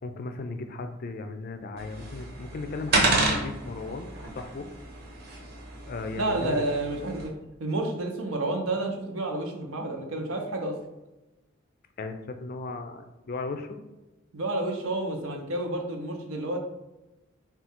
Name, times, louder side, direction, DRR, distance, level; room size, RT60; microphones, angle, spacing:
voice 1, 0.0-4.1 4.3-4.7 5.9-6.6 12.0-13.8, left 3 dB, 45° left, 7 dB, 0.4 m, -36 dB
sound 1, 1.8-7.3, right 2 dB, 50° right, 0.9 m, -30 dB
voice 2, 6.2-7.3 7.6-10.8 14.3-16.6, right 2 dB, 80° right, 3 dB, 0.7 m, -30 dB
3.7 x 2.3 x 4.3 m, 1.0 s
head